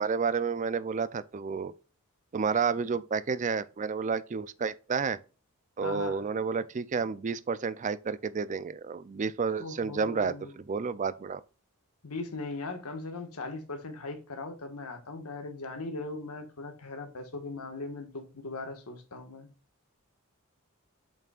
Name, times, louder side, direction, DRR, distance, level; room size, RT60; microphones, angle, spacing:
voice 1, 0.0-1.7 2.3-5.2 5.8-11.4, right 5 dB, 35° right, 0.4 m, -30 dB
voice 2, 5.8-6.2 9.6-10.5 12.0-19.5, left 3 dB, 85° left, 1.6 m, -39 dB
7.2 x 5.8 x 2.4 m
head